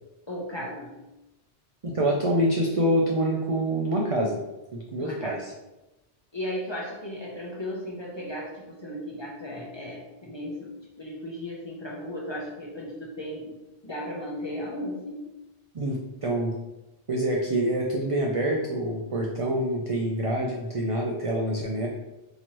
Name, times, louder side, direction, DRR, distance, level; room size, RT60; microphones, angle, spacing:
voice 1, 0.3-1.0 5.0-5.4 6.3-10.7 11.0-13.6 13.8-15.2, left 1 dB, 30° left, -3 dB, 0.7 m, -35 dB
voice 2, 1.8-4.4 4.7-5.4 15.7-16.5 17.1-21.9, right 1 dB, 50° right, -1 dB, 0.4 m, -26 dB
4.3 x 2.9 x 3.0 m, 0.99 s
omnidirectional pair, 1.1 m